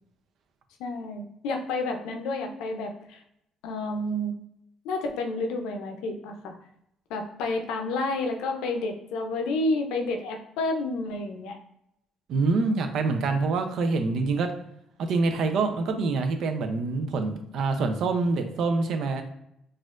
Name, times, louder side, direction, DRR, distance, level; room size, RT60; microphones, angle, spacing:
voice 1, 0.8-3.2 3.6-4.4 4.8-6.6 7.1-11.6, left 2 dB, 85° left, 4 dB, 0.5 m, -30 dB
voice 2, 12.3-14.5 15.1-19.2, right 3 dB, 70° right, 6 dB, 0.5 m, -26 dB
4.2 x 2.5 x 2.4 m, 0.80 s
cardioid pair, 90°, 0 cm